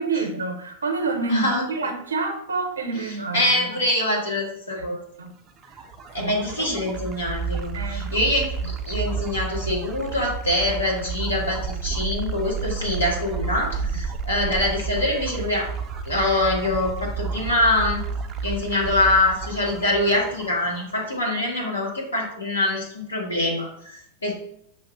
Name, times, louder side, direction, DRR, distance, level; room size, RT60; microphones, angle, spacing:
voice 1, 0.0-3.8 4.7-5.3 5.7-5.8 6.2-6.8 7.7-8.1 13.9-14.0, right 3 dB, 75° right, 4 dB, 0.7 m, -28 dB
voice 2, 1.3-1.6 3.3-5.0 6.1-15.7 16.0-18.0 18.4-24.3, left 1 dB, 75° left, -3 dB, 1.5 m, -24 dB
sound 1, 5.5-21.2, right 5 dB, 30° right, 0.5 m, -31 dB
6.2 x 2.4 x 3.6 m, 0.70 s
figure-of-eight pair, 90°, 0 cm